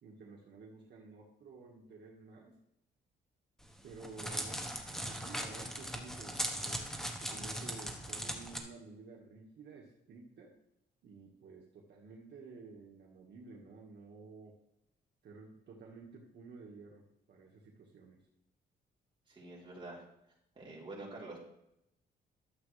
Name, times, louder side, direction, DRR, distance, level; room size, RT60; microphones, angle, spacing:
voice 1, 0.0-2.6 3.8-10.5 11.0-14.6 15.2-17.0 17.3-18.2, right 4 dB, 65° right, -2 dB, 1.7 m, -52 dB
Crackle, 3.6-8.6, equal, ahead, 1.1 m, -39 dB
voice 2, 19.3-20.0 20.6-21.4, right 2 dB, 25° right, -6 dB, 3.7 m, -47 dB
12.5 x 7.4 x 3.3 m, 0.82 s
cardioid pair, 130°, 19 cm